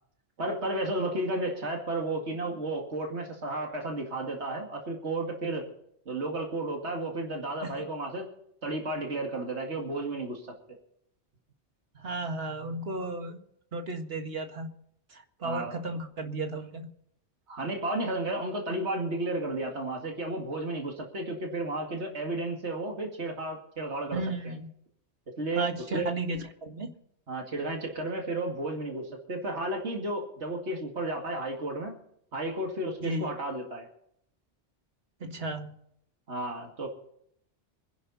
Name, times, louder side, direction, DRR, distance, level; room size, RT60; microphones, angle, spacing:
voice 1, 0.4-5.7 6.1-8.3 8.6-10.4 15.4-15.7 17.5-24.5 25.4-26.1 27.3-32.0 32.3-33.9 36.3-36.9, right 2 dB, 75° right, 1 dB, 2.5 m, -33 dB
voice 2, 12.0-13.4 13.7-14.7 15.1-16.9 24.1-24.7 25.6-26.9 33.0-33.4 35.2-35.7, right 2 dB, 60° right, 5 dB, 2.0 m, -34 dB
25.5 x 11.0 x 4.1 m, 0.72 s
omnidirectional pair, 1.1 m